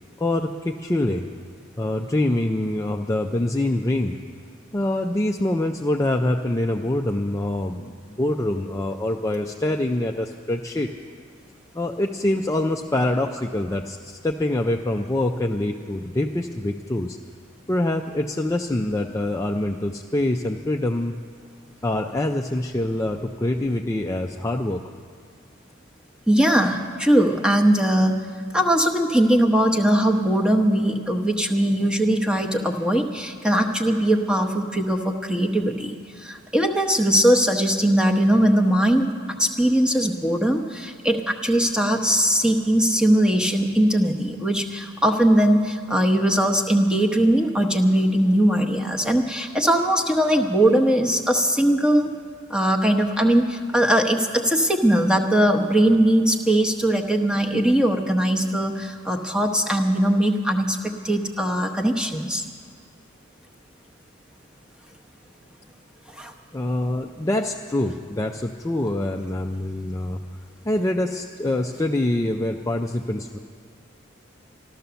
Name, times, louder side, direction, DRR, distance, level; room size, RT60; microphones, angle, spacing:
voice 1, 0.2-1.3 1.8-4.2 4.7-10.9 11.7-17.2 17.7-21.2 21.8-24.8 66.5-70.2 70.6-73.4, left 1 dB, 15° left, 2 dB, 0.4 m, -25 dB
voice 2, 26.3-28.1 28.5-39.1 39.4-52.1 52.5-60.8 61.0-62.4 66.1-66.3, right 1 dB, 5° right, 2 dB, 0.9 m, -20 dB
14.0 x 12.5 x 6.9 m, 2.1 s
head